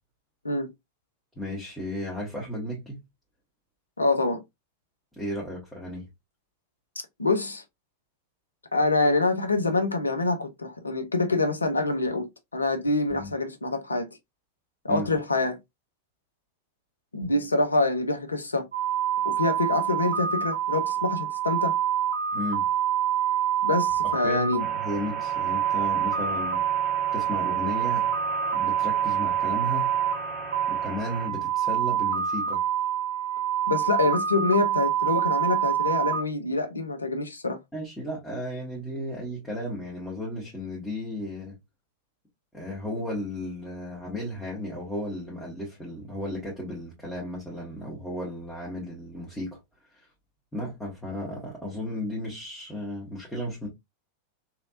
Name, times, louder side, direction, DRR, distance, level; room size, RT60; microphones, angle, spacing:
voice 1, 1.3-3.0 5.2-6.1 13.1-13.3 14.9-15.1 22.3-22.7 24.2-26.6 27.1-28.1 28.5-29.9 30.7-32.6 37.7-41.6 42.5-49.6 49.9-50.0 50.5-53.7, left 1 dB, 5° left, 1.5 m, -34 dB
voice 2, 4.0-4.4 7.2-7.6 8.7-14.1 14.8-15.6 17.1-18.7 19.2-21.7 23.6-24.6 33.7-37.6, left 2 dB, 80° left, 0.6 m, -26 dB
sound 1, 18.7-36.2, right 9 dB, 75° right, 0.6 m, -26 dB
sound 2, 24.6-31.3, right 3 dB, 10° right, 1.3 m, -40 dB
3.0 x 2.8 x 2.4 m
figure-of-eight pair, 90°, 0 cm